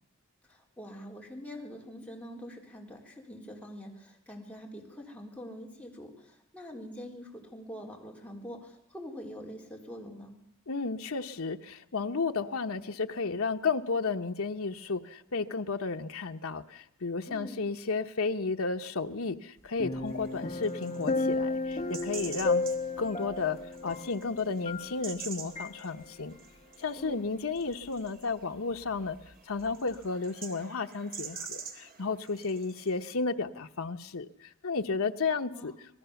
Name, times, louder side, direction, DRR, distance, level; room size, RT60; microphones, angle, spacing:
voice 1, 0.5-10.3 17.3-17.6 27.0-27.2 35.5-35.8, equal, 5° left, 0 dB, 4.0 m, -44 dB
voice 2, 10.7-22.7 23.0-23.6 23.8-26.4 26.8-29.2 29.5-35.7, left 4 dB, 70° left, 6 dB, 1.0 m, -33 dB
sound 1, 19.8-25.2 25.6-25.7, left 3 dB, 30° left, 2.0 m, -33 dB
sound 2, 20.1-33.1, right 6 dB, 45° right, 2.5 m, -47 dB
26.0 x 19.5 x 7.1 m, 0.73 s
head